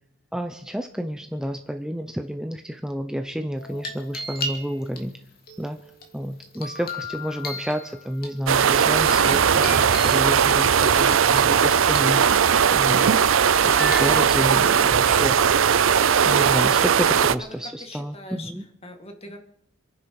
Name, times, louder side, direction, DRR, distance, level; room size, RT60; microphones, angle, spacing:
voice 1, 0.3-5.2 5.6-13.2 13.6-15.4 16.3-18.6, equal, 5° right, 6 dB, 0.7 m, -30 dB
sound 1, 3.6-5.0 5.5-8.3 8.7-10.6 11.0-12.5 12.9-13.2 13.4-14.7 15.7-16.0, left 2 dB, 45° left, 2.8 m, -35 dB
sound 2, 8.5-17.4, right 7 dB, 70° right, 0.5 m, -18 dB
voice 2, 17.6-18.5 18.8-19.4, left 1 dB, 30° left, 5 dB, 2.2 m, -41 dB
27.5 x 10.5 x 4.8 m, 0.70 s
head